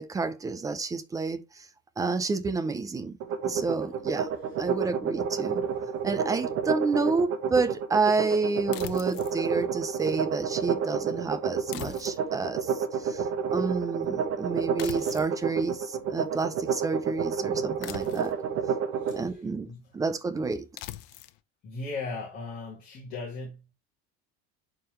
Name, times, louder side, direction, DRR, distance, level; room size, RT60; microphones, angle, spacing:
voice 1, 0.0-1.7 2.0-3.2 3.4-4.3 4.6-5.6 6.0-18.3 19.1-19.7 19.9-20.7, right 4 dB, 10° right, 0.5 m, -29 dB
sound 1, 3.2-19.2, right 7 dB, 45° right, 1.2 m, -29 dB
voice 2, 4.4-4.9 5.7-6.4 18.9-19.9 21.6-23.7, left 3 dB, 30° left, 2.2 m, -39 dB
sound 2, 8.7-9.4 11.7-12.5 14.8-15.4 17.8-18.5 20.8-21.4, left 15 dB, 85° left, 0.8 m, -41 dB
11.0 x 3.8 x 3.1 m
cardioid pair, 180°, 30 cm